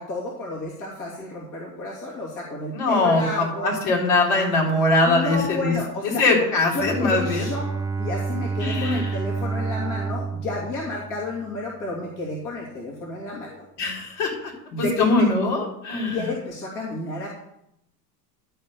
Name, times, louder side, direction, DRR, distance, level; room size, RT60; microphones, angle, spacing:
voice 1, 0.0-3.8 5.1-6.5 6.7-7.6 8.0-13.6 14.7-15.0 16.1-17.3, left 2 dB, 40° left, -4 dB, 2.7 m, -31 dB
voice 2, 2.7-5.7 6.0-7.5 8.6-9.2 13.8-14.5 14.8-16.3, left 2 dB, 55° left, -2 dB, 3.9 m, -22 dB
Bowed string instrument, 6.8-11.7, right 4 dB, 10° right, 0.6 m, -29 dB
12.0 x 4.5 x 6.8 m, 0.79 s
hypercardioid pair, 95°, 49 cm